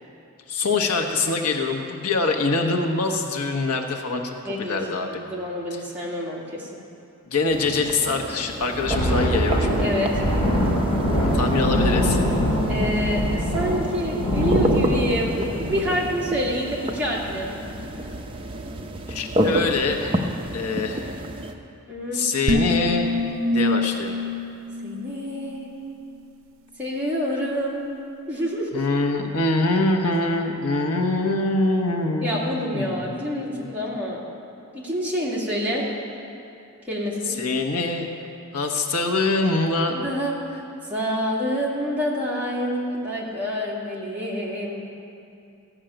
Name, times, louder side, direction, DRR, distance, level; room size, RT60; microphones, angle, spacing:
voice 1, 0.5-5.2 5.7-5.8 7.3-9.7 11.3-12.2 19.1-20.2 20.5-21.2 22.1-23.2 23.5-24.2 28.7-33.7 37.3-38.1 38.5-40.0, left 3 dB, 85° left, 3 dB, 1.1 m, -24 dB
voice 2, 4.5-6.7 9.8-10.1 12.7-17.5 21.9-22.2 24.8-25.7 26.8-28.0 28.3-28.8 32.2-34.2 34.7-35.9 36.9-37.4 39.9-40.3 40.9-44.9, equal, 5° right, -6 dB, 2.2 m, -27 dB
sound 1, 7.5-21.5, equal, 25° right, 0.7 m, -30 dB
Thunder, 8.7-17.7 18.1-18.3 18.7-18.9 19.5-20.0, equal, 25° left, 2.8 m, -23 dB
sound 2, 22.5-25.8, left 2 dB, 60° right, 0.7 m, -25 dB
14.5 x 6.3 x 8.9 m, 2.6 s
head